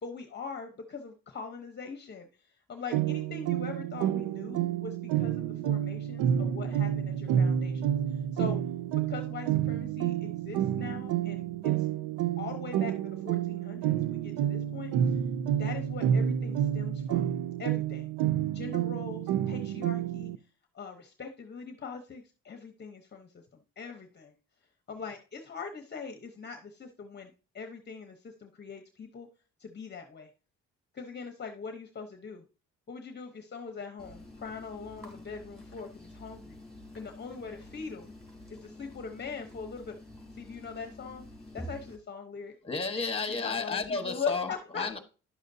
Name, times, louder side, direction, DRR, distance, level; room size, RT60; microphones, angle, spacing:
voice 1, 0.0-8.6 9.1-11.9 12.4-15.2 15.5-17.3 17.6-18.1 18.5-20.5 20.7-24.3 24.9-29.3 29.6-30.3 30.9-32.4 32.9-36.6 36.9-38.1 38.5-40.0 40.3-41.3 41.5-42.5 43.3-44.9, left 5 dB, 35° left, 0.9 m, -42 dB
sound 1, 2.9-20.4, right 10 dB, 85° right, 0.6 m, -29 dB
sound 2, 34.0-42.0, left 1 dB, ahead, 4.1 m, -48 dB
voice 2, 42.6-45.0, left 4 dB, 20° left, 1.3 m, -32 dB
11.0 x 6.4 x 2.7 m
cardioid pair, 90°, 30 cm